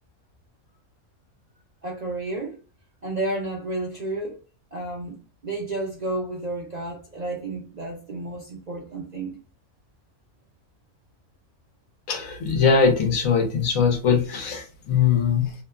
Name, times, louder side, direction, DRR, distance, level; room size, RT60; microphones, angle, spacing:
voice 1, 1.8-2.6 3.0-4.4 4.7-5.2 5.4-9.4, right 2 dB, 70° right, 0.4 m, -31 dB
voice 2, 12.1-15.5, left 6 dB, 70° left, 1.1 m, -21 dB
2.8 x 2.1 x 2.3 m
omnidirectional pair, 1.5 m